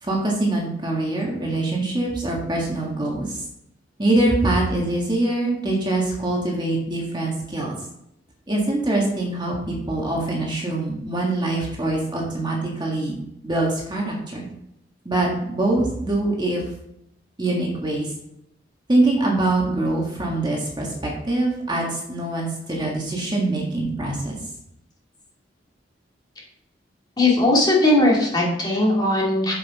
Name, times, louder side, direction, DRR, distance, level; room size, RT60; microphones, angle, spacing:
voice 1, 0.0-3.4 4.0-7.8 8.5-13.2 13.4-14.5 15.1-16.7 17.4-18.1 18.9-24.4, right 2 dB, 25° right, -2 dB, 1.7 m, -24 dB
voice 2, 27.2-29.5, left 1 dB, 25° left, -3 dB, 2.5 m, -18 dB
7.1 x 6.9 x 4.2 m, 0.79 s
head